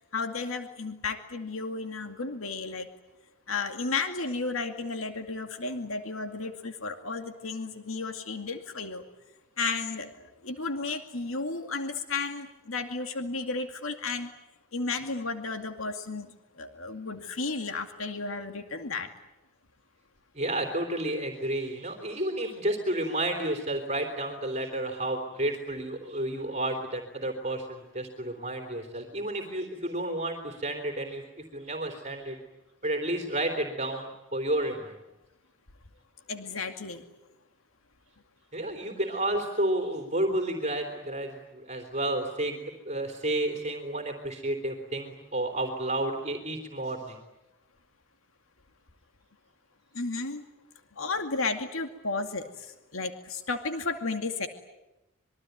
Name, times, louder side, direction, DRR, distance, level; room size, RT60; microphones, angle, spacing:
voice 1, 0.0-2.9 3.5-9.0 9.6-14.3 14.7-16.3 16.6-19.1 36.3-37.0 49.9-50.4 51.0-54.5, left 3 dB, 85° left, 6 dB, 2.3 m, -33 dB
voice 2, 20.3-31.2 31.5-32.4 32.8-35.0 38.5-42.6 42.8-47.2, right 1 dB, 35° right, 4 dB, 3.5 m, -31 dB
26.5 x 23.0 x 9.4 m, 0.96 s
head